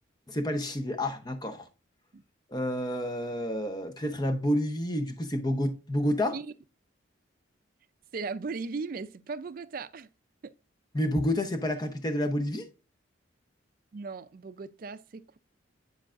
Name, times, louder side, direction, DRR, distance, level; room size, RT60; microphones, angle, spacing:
voice 1, 0.3-1.7 2.5-6.4 10.9-12.7, equal, 20° left, 0.7 m, -29 dB
voice 2, 8.1-10.1 10.4-10.5 13.9-15.4, right 4 dB, 45° right, 0.4 m, -37 dB
10.0 x 4.7 x 2.5 m
head